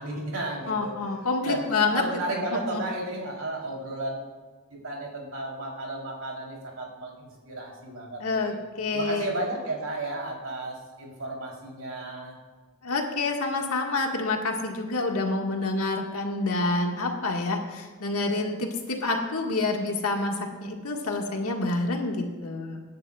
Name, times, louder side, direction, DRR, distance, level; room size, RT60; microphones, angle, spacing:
voice 1, 0.0-1.1 1.4-4.3 4.8-8.6 8.9-12.4, right 2 dB, 70° right, -2 dB, 3.5 m, -33 dB
voice 2, 0.7-2.0 2.3-2.8 8.2-9.3 12.8-22.8, left 3 dB, 80° left, 1 dB, 1.7 m, -28 dB
23.0 x 10.5 x 2.4 m, 1.4 s
head